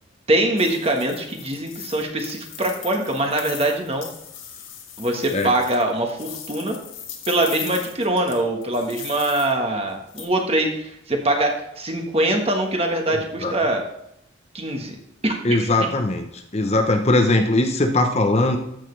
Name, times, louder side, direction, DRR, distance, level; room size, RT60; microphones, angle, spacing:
voice 1, 0.3-4.1 5.0-6.8 7.3-13.8 14.5-14.9 15.2-15.9, right 1 dB, 30° right, 2 dB, 1.4 m, -23 dB
sound 1, 0.6-9.5 10.1-10.3, left 9 dB, 75° left, 1.7 m, -39 dB
voice 2, 15.4-16.3 16.5-18.6, left 2 dB, 30° left, 4 dB, 0.8 m, -19 dB
14.0 x 6.5 x 3.3 m, 0.79 s
head